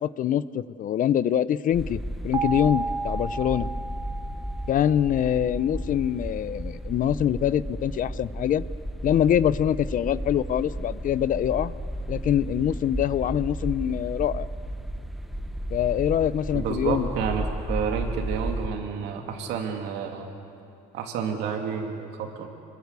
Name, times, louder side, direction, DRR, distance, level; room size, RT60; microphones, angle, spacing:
voice 1, 0.0-3.7 4.7-8.6 9.0-11.7 12.1-14.5 15.7-17.1, left 10 dB, 55° left, 17 dB, 0.6 m, -24 dB
sound 1, 1.7-18.7, right 1 dB, ahead, 1.0 m, -33 dB
sound 2, 2.3-5.3, right 3 dB, 25° right, 1.4 m, -33 dB
voice 2, 16.5-20.3 20.9-22.5, right 6 dB, 90° right, 3 dB, 2.6 m, -30 dB
26.5 x 22.0 x 8.2 m, 2.6 s
cardioid pair, 110°, 17 cm